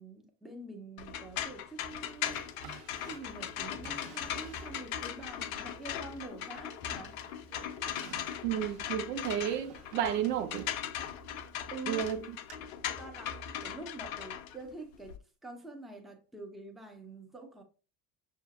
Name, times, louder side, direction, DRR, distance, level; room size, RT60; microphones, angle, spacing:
voice 1, 0.0-2.4 3.0-7.2 11.7-12.1 13.0-15.1 15.4-17.6, right 3 dB, ahead, 0.6 m, -46 dB
sound 1, 1.0-15.2, left 9 dB, 55° left, 0.6 m, -39 dB
Drawer open or close, 2.2-5.1 5.6-6.7 7.0-11.8 12.5-12.6, right 6 dB, 50° right, 1.1 m, -54 dB
voice 2, 8.4-10.7 11.9-12.4, right 10 dB, 70° right, 0.6 m, -32 dB
6.2 x 2.6 x 2.5 m
figure-of-eight pair, 65°, 50 cm